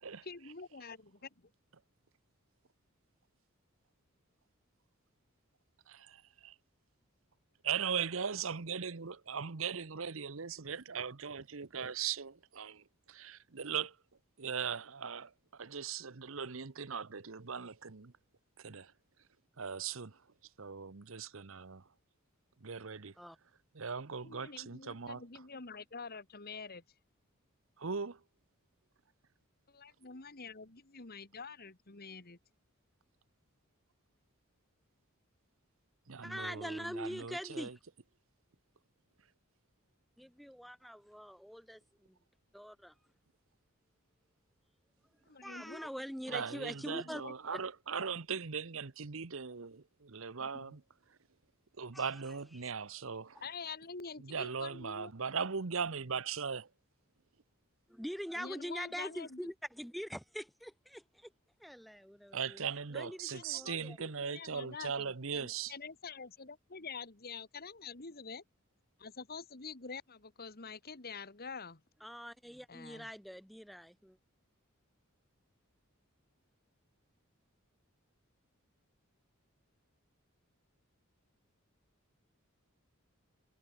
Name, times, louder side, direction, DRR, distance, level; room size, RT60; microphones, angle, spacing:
voice 1, 0.2-1.3 24.2-26.8 29.7-32.4 45.3-45.8 46.3-46.4 46.8-47.3 50.4-50.7 53.4-55.1 58.4-59.4 63.3-68.4 69.0-71.8 72.7-73.1, left 5 dB, 45° left, 1.9 m, -47 dB
voice 2, 5.9-6.5 7.6-14.0 14.4-18.1 18.6-18.9 19.6-20.2 20.6-21.8 22.6-23.1 23.7-25.2 27.8-28.2 36.1-37.7 46.3-50.8 51.8-53.4 54.2-56.7 62.3-65.7, right 6 dB, 65° right, 1.0 m, -39 dB
voice 3, 36.2-37.8 40.2-42.2 42.5-42.9 45.4-47.2 51.9-52.2 57.9-61.3 61.6-62.6 62.9-64.0 72.0-74.2, equal, ahead, 7.2 m, -44 dB
head